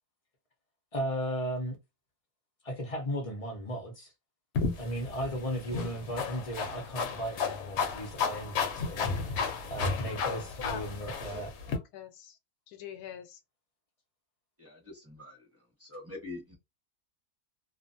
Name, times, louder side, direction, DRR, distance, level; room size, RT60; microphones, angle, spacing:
voice 1, 0.9-1.8 2.6-4.1 4.8-9.4 9.7-11.5, equal, 35° left, 0.6 m, -36 dB
sound 1, 4.5-11.8, left 5 dB, 60° left, 0.9 m, -33 dB
voice 2, 10.6-10.9 11.2-11.4 11.7-12.4 12.7-13.4, left 9 dB, 85° left, 1.1 m, -44 dB
voice 3, 14.6-15.4 15.8-16.6, left 2 dB, 10° right, 1.0 m, -44 dB
2.5 x 2.5 x 2.6 m
omnidirectional pair, 1.6 m